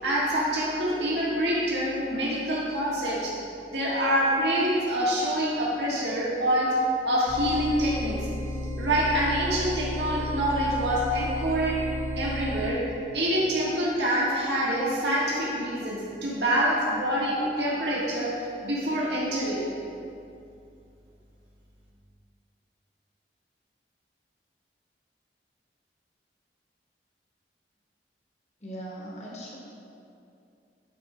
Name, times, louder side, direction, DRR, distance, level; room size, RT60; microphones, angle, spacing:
voice 1, 0.0-3.3 3.7-6.7 7.0-8.2 8.8-11.8 12.2-12.8 13.1-19.7, equal, 80° right, -6 dB, 1.6 m, -26 dB
sound 1, 7.3-12.7, left 1 dB, 25° left, 1.1 m, -33 dB
voice 2, 28.6-29.5, right 1 dB, 40° left, -4 dB, 1.3 m, -39 dB
10.5 x 5.0 x 3.3 m, 2.6 s
head